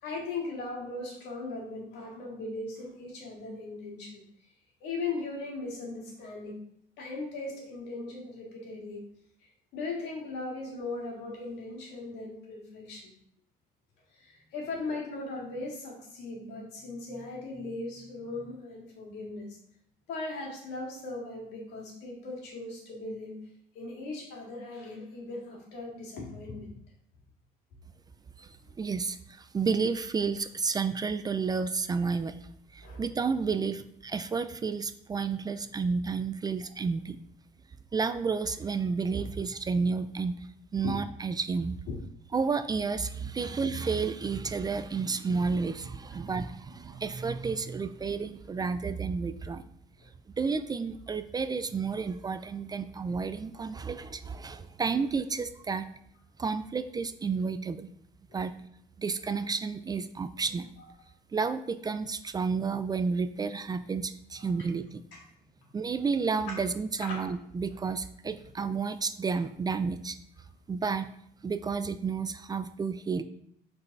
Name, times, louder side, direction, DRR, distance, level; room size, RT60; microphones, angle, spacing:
voice 1, 0.0-4.2 4.8-6.6 7.0-9.0 9.7-13.1 14.1-19.6 20.1-23.4 23.7-26.7 32.8-33.0 40.8-40.9 41.9-42.0 43.4-43.6 46.1-46.3 58.3-58.4 64.4-64.5 65.1-65.2 67.0-67.2, left 3 dB, 85° left, -2 dB, 2.1 m, -38 dB
voice 2, 28.4-32.4 32.7-37.2 37.9-41.8 42.3-49.6 50.4-55.9 56.4-57.9 58.3-58.5 59.0-60.7 61.3-65.0 65.7-70.2 70.7-71.1 71.4-73.2, right 5 dB, 25° right, 11 dB, 0.4 m, -31 dB
5.4 x 4.1 x 4.6 m, 0.69 s
cardioid pair, 110°, 17 cm